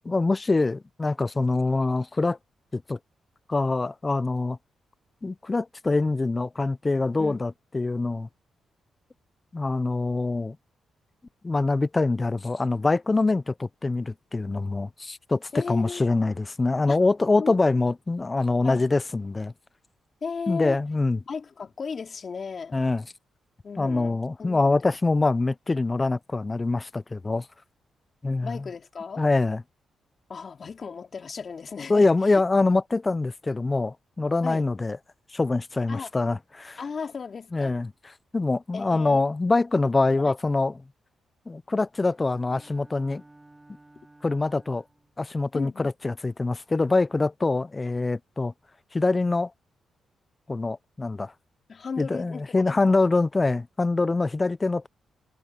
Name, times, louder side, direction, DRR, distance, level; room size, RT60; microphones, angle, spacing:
voice 1, 0.1-2.4 2.7-3.0 3.5-4.6 5.2-8.3 9.5-10.6 11.4-19.5 20.5-21.2 22.7-23.0 23.8-27.5 28.2-28.6 29.2-29.6 31.9-35.0 35.3-36.8 37.5-37.9 38.3-40.7 41.5-43.2 44.2-44.8 45.2-48.5 48.9-49.5 50.5-51.3 52.0-54.9, left 3 dB, 30° left, 0.8 m, -24 dB
voice 2, 15.5-16.0 16.9-17.0 17.4-17.5 18.6-18.9 20.2-20.8 21.3-22.8 23.6-24.9 28.4-29.2 30.3-32.4 34.4-34.7 35.9-36.1 36.8-37.7 38.7-39.2 40.1-40.3 45.5-45.9 51.7-53.0, left 5 dB, 50° left, 3.1 m, -36 dB
Bowed string instrument, 42.1-45.2, right 2 dB, 20° right, 2.3 m, -54 dB
supercardioid pair, 50°, 0 cm